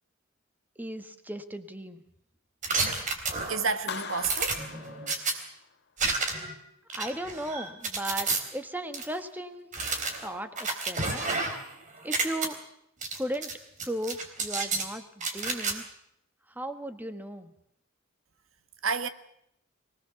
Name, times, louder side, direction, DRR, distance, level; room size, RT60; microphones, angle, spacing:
voice 1, 0.8-2.0 6.9-9.7 10.2-11.2 12.0-12.6 13.2-13.5 13.8-15.8 16.6-17.5, right 1 dB, 10° right, 1.6 m, -36 dB
sound 1, 2.6-3.7 4.2-5.3 6.0-6.5 6.9-8.4 8.9-9.0 9.7-11.7 12.0-12.5 13.0-13.5 13.8-14.9 15.2-15.7, right 3 dB, 40° right, 3.8 m, -30 dB
voice 2, 3.5-4.6 18.8-19.1, right 5 dB, 80° right, 1.7 m, -29 dB
Clapping, 3.9-5.7, left 6 dB, 55° left, 1.7 m, -40 dB
24.0 x 19.0 x 7.1 m
head